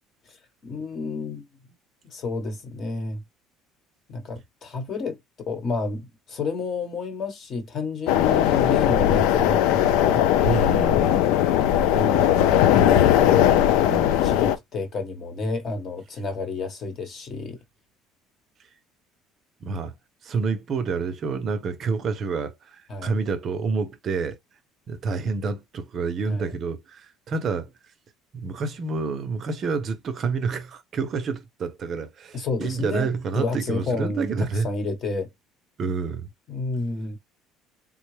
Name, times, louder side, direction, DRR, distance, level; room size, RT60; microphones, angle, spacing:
voice 1, 0.3-1.5 2.0-3.2 4.1-5.2 5.5-10.3 11.9-13.6 14.2-17.6 22.9-23.2 26.2-26.5 32.3-33.1 33.3-34.3 34.6-35.3 36.5-37.2, left 3 dB, 35° left, 1.1 m, -30 dB
sound 1, 8.1-14.6, left 11 dB, 85° left, 0.4 m, -19 dB
voice 2, 10.4-11.2 13.9-14.2 19.6-19.9 20.2-24.4 24.9-27.7 28.3-34.7 35.8-36.3, right 4 dB, 35° right, 0.6 m, -28 dB
3.7 x 2.1 x 3.1 m
cardioid pair, 150°, 0 cm